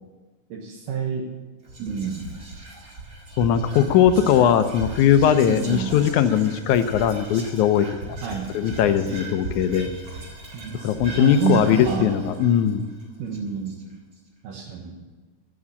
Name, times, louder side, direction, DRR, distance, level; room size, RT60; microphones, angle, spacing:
voice 1, 0.5-1.3 1.8-2.3 4.4-4.6 5.5-5.9 8.2-8.5 9.1-9.2 10.5-12.1 13.2-13.8 14.4-15.0, right 6 dB, 75° right, -1 dB, 2.7 m, -29 dB
Whispering, 1.6-14.1, right 2 dB, 30° right, 1.9 m, -38 dB
voice 2, 3.4-7.9 8.5-9.9 10.8-12.9, left 9 dB, 75° left, 10 dB, 1.9 m, -19 dB
12.5 x 7.3 x 7.0 m, 1.3 s
omnidirectional pair, 3.9 m